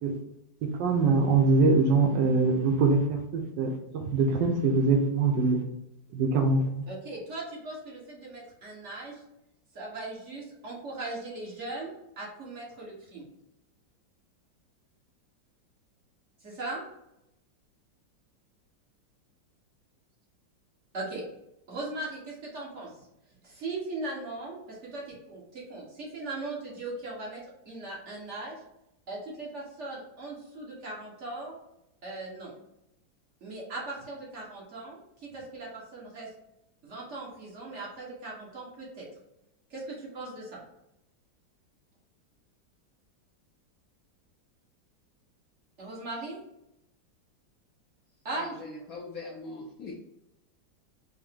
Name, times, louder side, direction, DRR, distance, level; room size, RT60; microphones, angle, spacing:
voice 1, 0.6-5.6 6.1-6.9, right 3 dB, 80° right, 4 dB, 1.3 m, -24 dB
voice 2, 6.9-9.2 9.7-13.2 16.4-16.8 20.9-21.2 21.7-22.9 23.4-25.0 25.3-27.4 27.6-28.6 29.1-31.6 32.0-32.5 33.4-36.3 36.8-39.1 39.7-40.6 45.8-46.4 48.2-48.5, right 2 dB, 45° right, -4 dB, 1.3 m, -39 dB
voice 3, 48.3-50.0, left 3 dB, 70° left, -1 dB, 0.9 m, -41 dB
4.7 x 2.1 x 3.5 m, 0.85 s
omnidirectional pair, 2.0 m